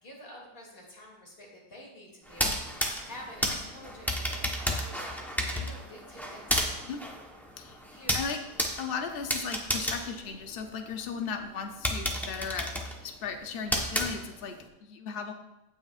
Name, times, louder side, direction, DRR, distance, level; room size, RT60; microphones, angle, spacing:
voice 1, 0.0-6.8 7.9-8.3, left 1 dB, 30° left, -2 dB, 2.7 m, -49 dB
sound 1, 2.3-11.0 11.4-11.5 11.8-14.6, equal, ahead, 0.5 m, -32 dB
voice 2, 8.8-12.7 13.0-15.3, left 6 dB, 90° left, 5 dB, 0.5 m, -36 dB
16.5 x 6.3 x 2.4 m, 0.99 s
omnidirectional pair, 1.9 m